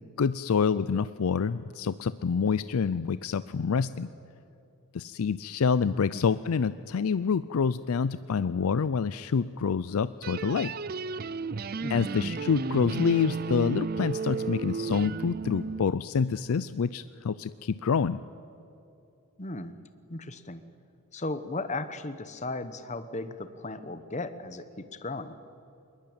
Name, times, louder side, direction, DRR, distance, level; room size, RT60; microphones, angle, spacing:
voice 1, 0.2-4.1 4.9-10.7 11.9-18.2, left 6 dB, 85° left, 15 dB, 0.5 m, -27 dB
voice 2, 5.9-6.2 11.8-12.1 19.4-19.8 20.1-20.6 21.1-25.4, left 2 dB, 35° left, 11 dB, 1.0 m, -36 dB
sound 1, 10.2-15.8, right 4 dB, 45° right, 0.5 m, -33 dB
21.5 x 21.0 x 8.8 m, 2.7 s
head